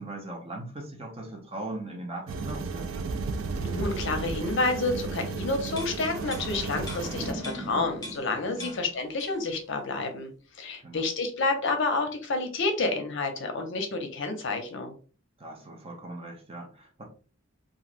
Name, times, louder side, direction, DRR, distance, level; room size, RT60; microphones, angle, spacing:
voice 1, 0.0-2.9 8.5-8.8 10.8-11.1 15.4-17.0, right 2 dB, 30° right, 1 dB, 0.7 m, -39 dB
sound 1, 2.3-7.3, right 4 dB, 85° right, 0.4 m, -33 dB
voice 2, 3.6-10.3 10.6-14.9, left 3 dB, 65° left, 6 dB, 0.6 m, -29 dB
sound 2, 5.8-8.3 8.6-9.6 9.9-10.0, left 2 dB, 20° left, 0.8 m, -44 dB
Engine starting, 6.1-9.1, equal, 50° right, 1.0 m, -40 dB
3.1 x 2.5 x 2.4 m, 0.39 s
head